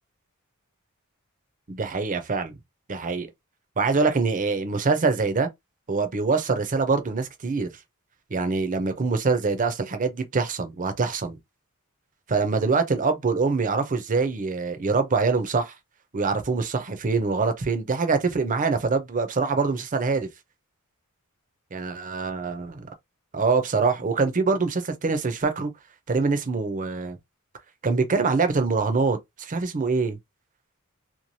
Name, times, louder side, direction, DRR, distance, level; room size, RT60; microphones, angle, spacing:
voice 1, 1.7-2.6 2.9-3.3 3.8-5.5 5.9-7.7 8.3-11.4 12.3-15.7 16.1-20.3 21.7-22.9 23.3-25.7 26.1-27.2 27.8-30.2, right 4 dB, 35° right, 0.6 m, -24 dB
3.0 x 2.3 x 2.6 m
head